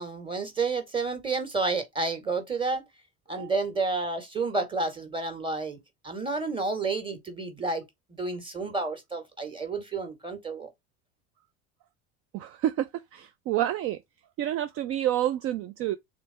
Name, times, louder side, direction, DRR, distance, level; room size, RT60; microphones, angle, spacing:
voice 1, 0.0-2.8 3.3-5.8 6.0-7.8 8.2-10.7, right 3 dB, 15° right, 1.9 m, -30 dB
voice 2, 12.3-14.0 14.4-16.0, right 12 dB, 50° right, 0.5 m, -29 dB
3.8 x 3.3 x 4.2 m
supercardioid pair, 100°, 29 cm